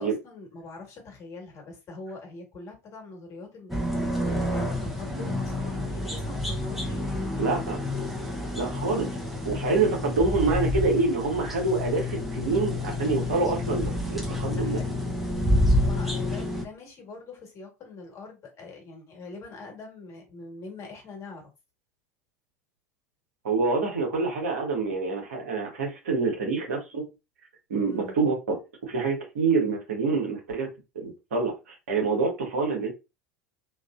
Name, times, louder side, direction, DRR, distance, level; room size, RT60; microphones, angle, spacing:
voice 1, 0.0-7.0 7.3-7.6 14.4-15.0 15.8-21.5 27.8-28.1, left 3 dB, 40° left, 1.6 m, -43 dB
sound 1, 3.7-16.6, left 1 dB, 5° right, 0.9 m, -28 dB
voice 2, 7.4-7.8 8.6-9.1 9.4-14.8 23.4-27.1 27.7-30.7 30.9-32.9, right 4 dB, 75° right, 1.3 m, -26 dB
3.0 x 2.5 x 2.5 m
hypercardioid pair, 80°, 8 cm